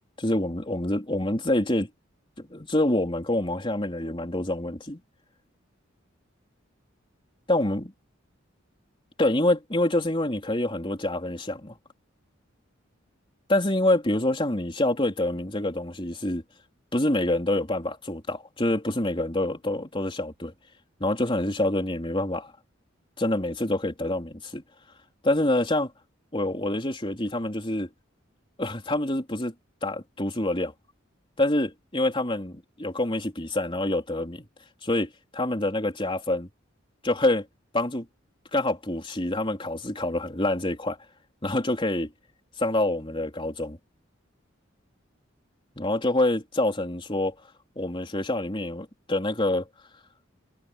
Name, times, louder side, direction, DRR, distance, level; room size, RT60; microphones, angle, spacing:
voice 1, 0.2-1.9 2.4-5.0 7.5-7.8 9.2-11.8 13.5-16.4 16.9-20.5 21.0-22.5 23.2-24.6 25.2-25.9 26.3-27.9 28.6-29.5 29.8-30.7 31.4-34.4 34.8-36.5 37.0-37.5 37.7-38.1 38.5-41.0 41.4-42.1 42.6-43.8 45.8-47.4 47.8-49.7, left 1 dB, 25° left, 3.8 m, -26 dB
head